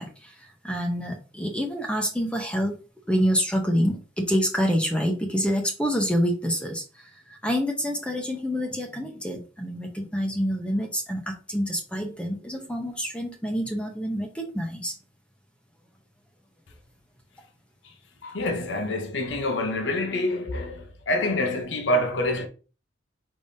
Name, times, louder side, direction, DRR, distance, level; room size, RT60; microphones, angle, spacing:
voice 1, 0.0-2.8 3.1-14.9, equal, 5° left, 0.7 m, -27 dB
voice 2, 18.2-22.5, left 1 dB, 80° left, 0.7 m, -26 dB
5.0 x 3.5 x 2.7 m
head